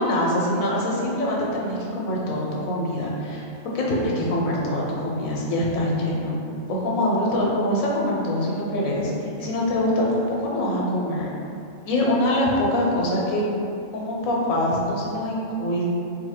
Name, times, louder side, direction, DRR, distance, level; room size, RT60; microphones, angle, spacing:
voice 1, 0.0-3.4 3.7-6.3 6.7-11.3 11.8-13.4 13.9-15.9, left 1 dB, 85° left, -3 dB, 1.1 m, -24 dB
2.8 x 2.6 x 4.3 m, 2.6 s
omnidirectional pair, 1.4 m